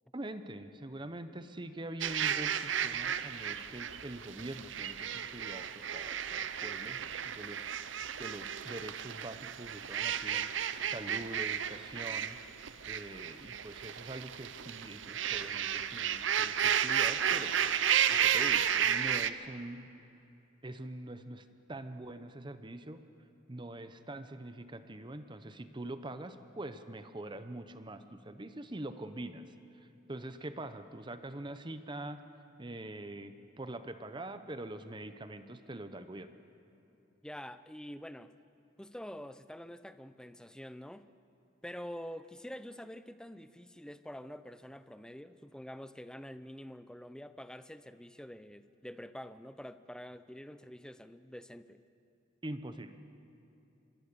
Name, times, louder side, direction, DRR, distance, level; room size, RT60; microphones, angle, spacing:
voice 1, 0.1-12.4 12.9-19.9 20.6-23.0 23.5-29.5 29.7-32.2 32.6-36.3 52.4-53.0, right 1 dB, 25° right, 10 dB, 0.8 m, -44 dB
sound 1, 2.0-19.3, right 9 dB, 75° right, 0.7 m, -33 dB
voice 2, 37.2-38.3 38.8-41.1 41.6-51.8, equal, 5° left, 12 dB, 0.6 m, -46 dB
25.0 x 21.5 x 6.8 m, 2.7 s
head